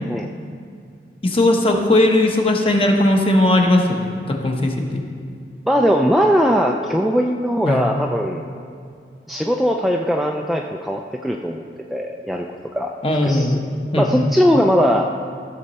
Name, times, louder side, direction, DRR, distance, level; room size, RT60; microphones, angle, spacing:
voice 1, 1.2-5.0 7.6-7.8 13.0-13.6 13.9-14.3, left 1 dB, 30° left, 2 dB, 1.0 m, -18 dB
voice 2, 5.7-8.4 9.3-11.6 11.9-12.5 12.7-12.9 13.2-13.6 14.0-15.1, equal, ahead, 0 dB, 0.3 m, -19 dB
14.5 x 6.6 x 4.1 m, 2.3 s
head